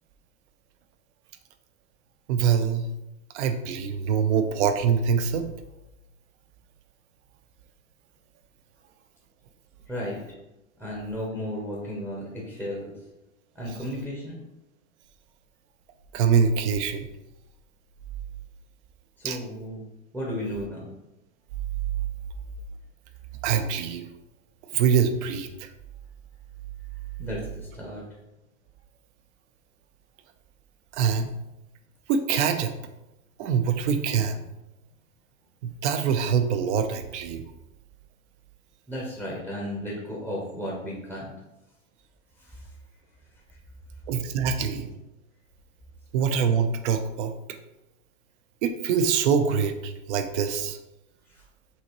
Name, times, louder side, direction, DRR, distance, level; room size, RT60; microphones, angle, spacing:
voice 1, 2.3-2.9 3.3-5.5 16.1-17.1 19.2-19.4 23.4-24.1 24.7-25.7 30.9-31.3 32.1-32.7 33.4-34.4 35.6-37.4 44.1-44.9 46.1-47.3 48.6-50.8, right 7 dB, 60° right, 8 dB, 0.6 m, -24 dB
voice 2, 9.9-10.2 10.8-12.9 13.5-14.4 19.2-19.8 20.1-20.9 27.2-28.1 38.9-41.3 42.4-42.7 43.5-43.6 51.3-51.4, equal, 5° right, -5 dB, 0.7 m, -34 dB
5.6 x 2.8 x 3.0 m, 0.95 s
hypercardioid pair, 130°, 40 cm